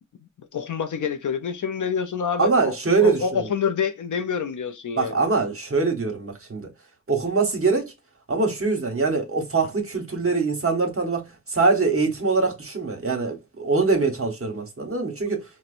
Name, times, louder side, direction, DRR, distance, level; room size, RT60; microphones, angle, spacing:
voice 1, 0.5-2.7 3.0-5.2, left 6 dB, 85° left, 0.5 m, -27 dB
voice 2, 2.4-3.5 5.0-6.7 7.1-7.9 8.3-15.4, right 4 dB, 45° right, 1.1 m, -23 dB
4.3 x 2.1 x 2.5 m
cardioid pair, 40°, 30 cm